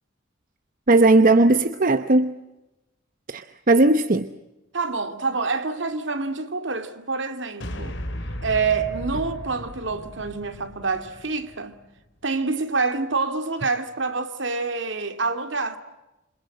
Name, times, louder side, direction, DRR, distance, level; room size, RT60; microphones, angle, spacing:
voice 1, 0.9-2.4 3.3-4.3, right 2 dB, 45° right, 0.9 m, -17 dB
voice 2, 4.7-8.0 8.4-11.8 12.2-15.8, right 4 dB, 65° right, 2.4 m, -27 dB
sound 1, 7.6-12.0, equal, 65° left, 3.5 m, -36 dB
28.0 x 26.5 x 7.8 m
head